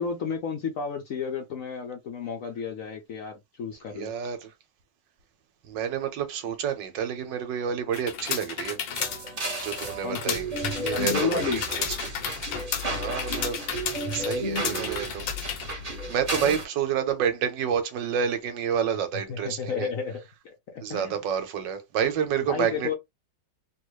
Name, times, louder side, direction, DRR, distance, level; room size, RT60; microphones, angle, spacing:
voice 1, 0.0-4.1 10.0-10.4 10.9-11.6 16.3-16.6 19.3-20.2 20.7-21.1 22.5-22.9, left 6 dB, 65° left, 0.8 m, -32 dB
voice 2, 3.9-4.5 5.7-8.8 9.6-10.5 10.8-12.1 12.9-13.6 14.1-15.2 16.1-19.9 20.8-22.9, right 8 dB, 80° right, 1.4 m, -29 dB
sound 1, 7.9-15.7, left 8 dB, 85° left, 1.5 m, -33 dB
sound 2, 8.9-16.7, right 1 dB, 25° right, 1.0 m, -32 dB
3.4 x 2.4 x 3.1 m
omnidirectional pair, 2.0 m